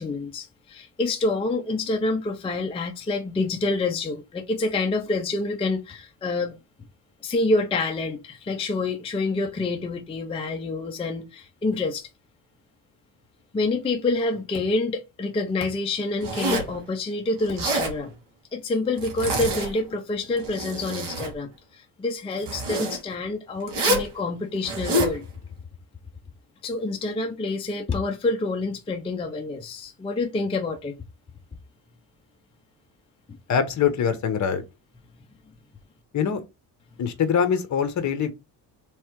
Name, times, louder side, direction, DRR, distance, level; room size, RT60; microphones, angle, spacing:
voice 1, 0.0-6.6 7.2-12.1 13.5-18.1 18.5-25.2 26.6-31.0, left 2 dB, 15° left, 0.4 m, -27 dB
Zipper (clothing), 16.2-16.8 17.4-18.0 19.0-19.9 20.3-21.3 22.4-23.0 23.7-24.1 24.6-25.2, right 1 dB, 75° right, 2.1 m, -26 dB
voice 2, 33.5-34.6 36.1-36.4 37.0-38.3, left 7 dB, 45° left, 0.9 m, -23 dB
3.6 x 3.2 x 4.5 m
cardioid pair, 145°, 42 cm